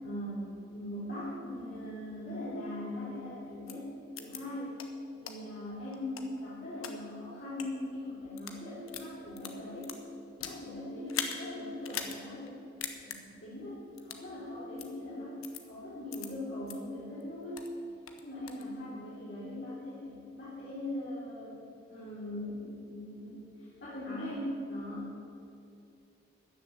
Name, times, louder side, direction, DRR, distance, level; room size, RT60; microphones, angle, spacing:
voice 1, 0.0-3.9 4.2-4.8 5.2-9.9 10.4-12.6 13.2-15.4 15.7-17.6 18.2-21.6 21.9-23.4 23.8-25.1, left 1 dB, 55° left, -9 dB, 3.6 m, -40 dB
sound 1, 3.7-3.8 4.2-4.4 4.8-4.9 5.3-5.4 5.9-6.9 7.5-7.7 8.2-8.6 8.9-10.6 11.1-11.4 11.8-12.2 12.5-12.6 12.8-13.2 14.0-14.2 14.8-14.9 15.4-15.6 16.1-16.3 16.7-16.8 17.2-17.7 18.1-18.6, left 8 dB, 85° left, 1.2 m, -39 dB
13.5 x 6.9 x 9.2 m, 2.6 s
head